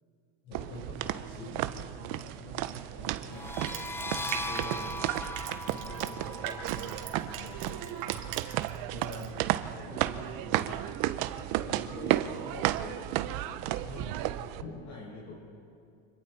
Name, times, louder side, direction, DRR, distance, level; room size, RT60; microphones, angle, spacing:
voice 1, 0.4-3.6 4.2-5.1 5.7-8.2 8.9-10.8 11.6-15.4, left 2 dB, 50° left, -3 dB, 5.0 m, -46 dB
sound 1, 0.5-14.6, right 14 dB, 65° right, 1.0 m, -33 dB
sound 2, 3.3-8.7, left 2 dB, 5° left, 0.5 m, -40 dB
Crushing, 3.5-8.8 9.0-9.3, right 10 dB, 85° right, 2.9 m, -39 dB
29.5 x 26.0 x 4.4 m, 2.5 s
supercardioid pair, 115°, 36 cm